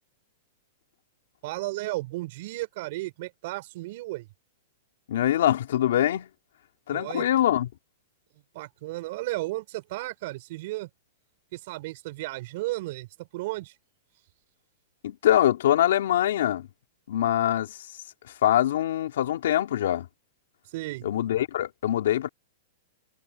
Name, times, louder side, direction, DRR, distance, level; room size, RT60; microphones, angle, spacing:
voice 1, 1.4-4.3 6.9-7.3 8.5-10.9 11.5-13.7 20.7-21.1, right 19 dB, 50° right, 5.5 m, -34 dB
voice 2, 5.1-6.3 6.9-7.7 15.0-16.7 17.1-17.8 18.4-20.1 21.0-22.3, left 12 dB, 70° left, 3.4 m, -23 dB
supercardioid pair, 155°, 0 cm